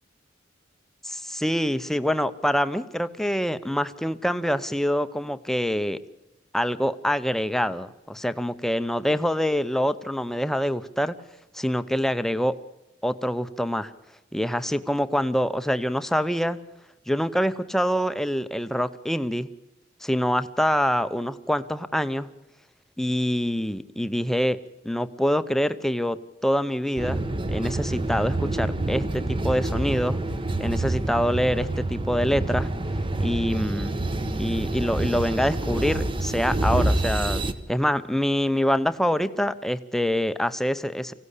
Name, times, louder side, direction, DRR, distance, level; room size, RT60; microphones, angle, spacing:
voice 1, 1.0-6.0 6.5-11.2 11.5-12.5 13.0-13.9 14.3-16.6 17.1-19.5 20.0-22.3 23.0-24.6 24.8-27.2 27.5-30.2 30.6-32.7 33.2-33.9 34.4-37.4 37.7-41.1, equal, ahead, 12 dB, 0.7 m, -25 dB
sound 1, 27.0-37.5, right 2 dB, 25° right, 1.0 m, -27 dB
25.0 x 16.5 x 8.3 m, 0.96 s
head